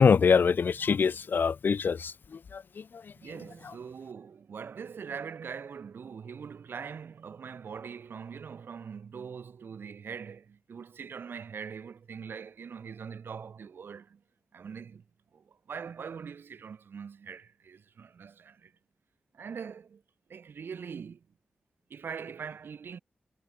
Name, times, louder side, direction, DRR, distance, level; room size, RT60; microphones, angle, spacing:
voice 1, 0.0-2.1 2.5-2.8, left 6 dB, 65° left, 0.4 m, -24 dB
voice 2, 3.2-14.2 14.5-15.0 15.3-18.7 19.3-20.0 20.3-21.2 21.9-23.0, right 6 dB, 75° right, 2.5 m, -42 dB
cardioid pair, 45°, 4 cm